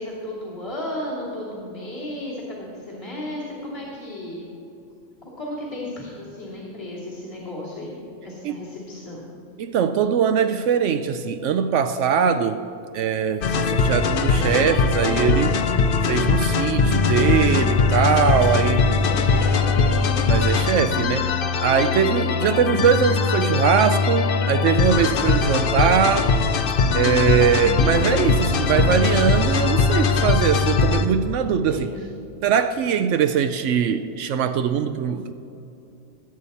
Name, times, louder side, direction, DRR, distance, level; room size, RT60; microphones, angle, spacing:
voice 1, 0.0-4.5 5.2-9.2 18.3-20.0 20.4-20.6 27.3-27.8 31.7-32.0, left 1 dB, 20° left, -7 dB, 2.7 m, -34 dB
voice 2, 9.6-12.6 12.9-15.6 16.0-18.9 20.3-21.3 21.6-26.3 26.9-31.9 32.4-35.3, right 7 dB, 75° right, 9 dB, 0.9 m, -21 dB
sound 1, 13.4-31.0, left 5 dB, 55° left, 0.8 m, -20 dB
19.5 x 8.8 x 4.2 m, 2.9 s
omnidirectional pair, 1.3 m